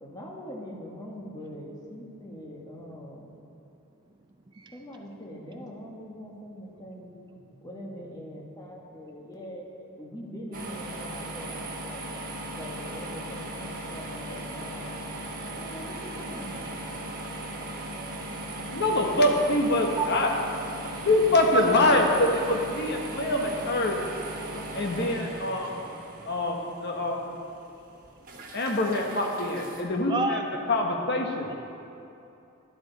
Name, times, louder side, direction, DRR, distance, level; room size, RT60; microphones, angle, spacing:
voice 1, 0.0-3.3 4.7-12.1 12.6-15.0 15.5-16.6 18.7-19.1, equal, 20° left, -3 dB, 1.6 m, -42 dB
sound 1, 10.5-29.8, right 1 dB, 40° right, 1.3 m, -38 dB
voice 2, 18.7-20.3 21.0-24.0 24.7-25.8 26.3-27.2 28.5-30.4 30.7-31.5, left 1 dB, 50° left, 1 dB, 1.2 m, -24 dB
voice 3, 30.1-30.4, right 4 dB, 20° right, 5 dB, 0.3 m, -30 dB
11.5 x 11.5 x 4.1 m, 2.7 s
head